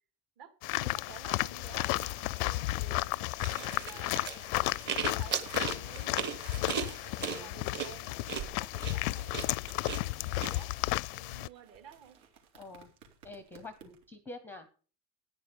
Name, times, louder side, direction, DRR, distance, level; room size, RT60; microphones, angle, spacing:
voice 1, 0.4-4.5 5.0-7.0 7.3-8.3 8.6-9.6 9.9-10.8 11.1-12.2, right 9 dB, 50° right, 7 dB, 2.8 m, -52 dB
sound 1, 0.6-11.5, left 21 dB, 85° left, 0.5 m, -33 dB
sound 2, 1.7-14.1, right 7 dB, 75° right, 4.1 m, -56 dB
sound 3, 3.4-10.5, right 6 dB, 25° right, 1.2 m, -37 dB
voice 2, 7.2-7.5 12.5-12.9 13.2-14.7, left 2 dB, 5° left, 10 dB, 0.6 m, -47 dB
14.0 x 10.0 x 5.1 m, 0.39 s
cardioid pair, 175°, 41 cm